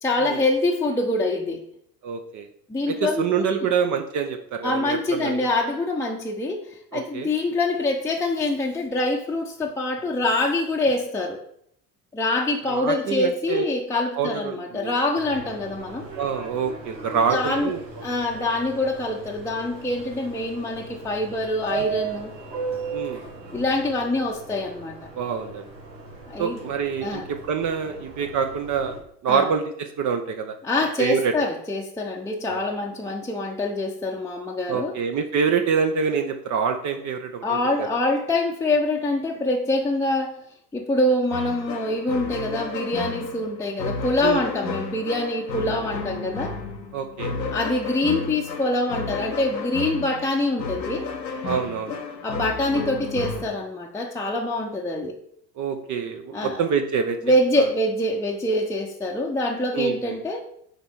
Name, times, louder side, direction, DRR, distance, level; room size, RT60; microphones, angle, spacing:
voice 1, 0.0-1.6 2.7-3.7 4.6-11.4 12.1-16.1 17.3-17.7 18.0-22.3 23.5-25.0 26.3-26.6 27.0-27.2 29.3-29.5 30.6-34.9 37.4-40.4 40.7-46.6 47.5-51.1 52.2-55.1 56.3-56.6 57.2-60.4, left 2 dB, 5° left, 0 dB, 0.7 m, -25 dB
voice 2, 2.0-2.5 2.9-5.4 6.9-7.3 12.7-13.6 14.2-14.9 16.2-17.8 22.9-23.2 25.1-25.7 26.4-28.9 29.2-30.5 31.0-31.3 32.5-32.7 34.7-37.9 44.2-44.4 46.9-47.3 51.4-52.0 55.6-57.2 57.6-57.7 59.7-60.2, right 6 dB, 35° right, 6 dB, 0.7 m, -26 dB
Subway metro underground, 15.2-29.0, right 4 dB, 90° right, 1.6 m, -37 dB
sound 1, 41.3-53.4, left 4 dB, 90° left, 1.0 m, -32 dB
6.6 x 4.4 x 4.6 m, 0.70 s
figure-of-eight pair, 70°, 49 cm